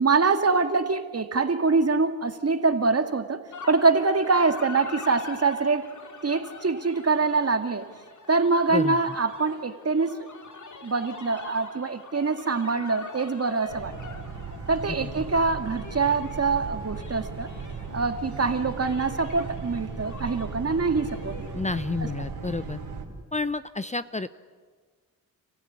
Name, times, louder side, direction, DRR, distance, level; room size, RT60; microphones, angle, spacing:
voice 1, 0.0-3.4 3.7-5.9 6.2-7.9 8.3-10.3 10.8-13.9 14.7-17.5 17.9-21.6 22.0-22.3, right 4 dB, 40° right, 7 dB, 2.3 m, -24 dB
sound 1, 3.5-23.0, left 4 dB, 55° left, 3.0 m, -44 dB
Boat Water vehicle, 13.7-23.1, right 5 dB, 85° right, 3.9 m, -37 dB
voice 2, 21.5-22.8 23.3-24.3, left 3 dB, 20° left, 13 dB, 0.7 m, -30 dB
29.5 x 15.5 x 9.9 m, 1.5 s
cardioid pair, 60°, 36 cm